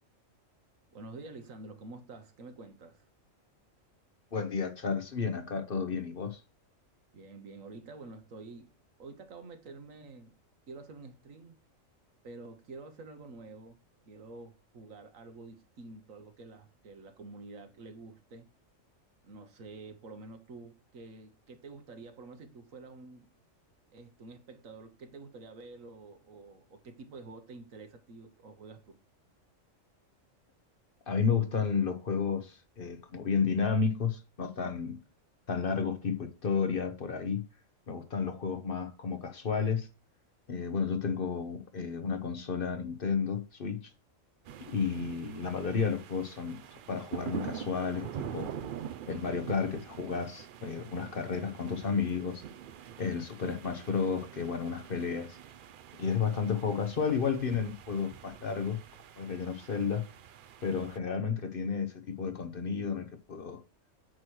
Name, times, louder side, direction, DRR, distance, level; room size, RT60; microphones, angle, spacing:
voice 1, 0.9-3.0 7.1-8.7 9.0-10.4 10.7-11.6 12.2-13.8 14.1-18.5 19.2-23.3 23.9-29.0, right 3 dB, 80° right, 1.5 m, -48 dB
voice 2, 4.3-6.4 31.1-35.0 35.5-37.5 37.9-39.9 40.5-43.9 44.6-46.6 46.9-48.5 49.1-52.4 53.0-55.4 56.0-58.8 59.2-60.0 60.6-63.6, left 6 dB, 45° left, 1.0 m, -32 dB
sound 1, 44.4-61.0, right 9 dB, 60° right, 0.5 m, -45 dB
9.0 x 3.1 x 6.1 m
omnidirectional pair, 1.4 m